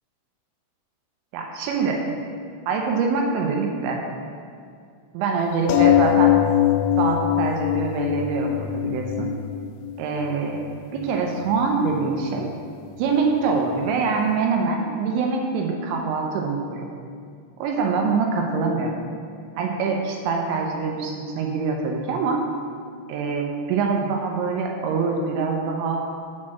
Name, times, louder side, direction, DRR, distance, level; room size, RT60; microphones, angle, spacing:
voice 1, 1.3-2.2 2.7-4.0 5.1-6.4 7.0-9.3 10.0-10.6 10.9-12.5 13.0-16.9 17.6-19.0 19.6-22.4 23.1-26.1, right 4 dB, 80° right, 1 dB, 2.7 m, -24 dB
sound 1, 5.7-10.7 11.5-11.6 11.9-12.0, left 12 dB, 90° left, 3.2 m, -21 dB
7.4 x 4.4 x 6.1 m, 2.2 s
omnidirectional pair, 5.7 m